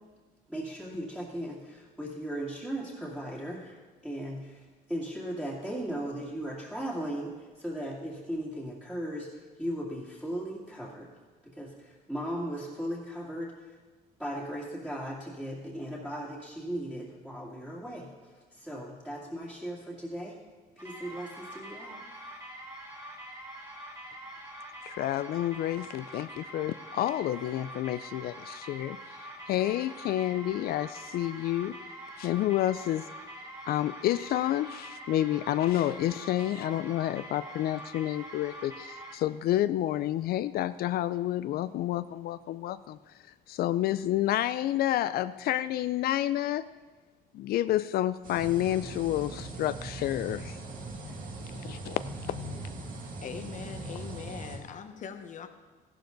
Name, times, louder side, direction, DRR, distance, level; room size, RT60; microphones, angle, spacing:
voice 1, 0.5-3.8 4.0-9.3 9.6-11.1 11.4-13.5 14.2-18.1 18.5-20.4 20.8-22.0, equal, 5° right, -7 dB, 2.4 m, -37 dB
sound 1, 20.8-39.2, right 1 dB, 20° right, 3.5 m, -45 dB
voice 2, 24.8-29.0 29.5-31.7 32.2-33.0 33.6-43.0 43.5-46.7 47.3-50.6 51.6-52.0, left 13 dB, 65° left, 14 dB, 0.4 m, -29 dB
sound 2, 48.2-54.6, right 2 dB, 55° right, 2.2 m, -40 dB
voice 3, 53.2-55.5, left 7 dB, 50° left, 8 dB, 1.0 m, -41 dB
14.5 x 11.5 x 3.9 m, 1.3 s
cardioid pair, 110°, 17 cm